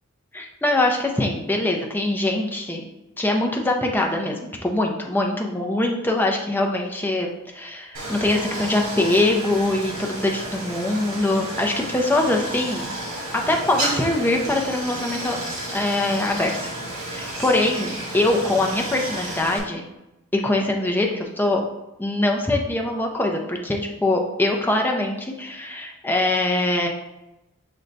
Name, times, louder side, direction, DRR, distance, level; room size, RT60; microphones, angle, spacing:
voice 1, 0.3-2.8 3.2-13.0 13.3-15.4 15.7-16.5 17.1-19.9 20.3-21.6 22.0-26.9, left 2 dB, 10° left, 1 dB, 0.4 m, -23 dB
Stream, 7.9-19.6, right 1 dB, 75° right, 1.3 m, -32 dB
6.2 x 2.2 x 3.9 m, 0.94 s
head